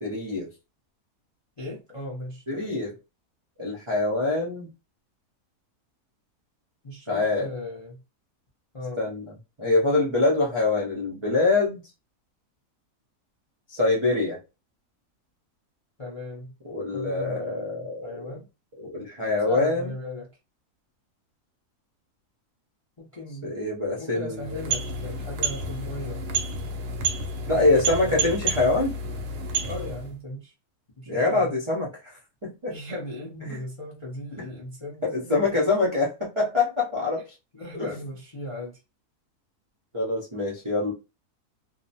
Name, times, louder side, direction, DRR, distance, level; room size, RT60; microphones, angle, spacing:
voice 1, 0.0-0.5 2.5-2.9 3.6-4.7 7.1-7.5 9.0-9.2 9.6-11.8 13.7-14.4 16.7-18.3 18.8-19.9 23.4-24.5 27.5-29.0 31.1-32.7 33.5-33.6 35.0-37.2 37.7-37.9 39.9-40.9, left 2 dB, 45° right, 0.3 m, -25 dB
voice 2, 1.6-2.7 6.8-8.0 8.7-9.0 16.0-16.5 16.9-18.5 19.4-20.3 23.0-23.5 24.0-26.2 27.5-28.2 29.6-30.5 31.0-31.5 32.7-35.5 37.5-38.8, left 1 dB, 45° left, 0.4 m, -37 dB
sound 1, 24.3-30.1, right 3 dB, 90° right, 1.2 m, -30 dB
2.7 x 2.0 x 2.7 m
omnidirectional pair, 1.7 m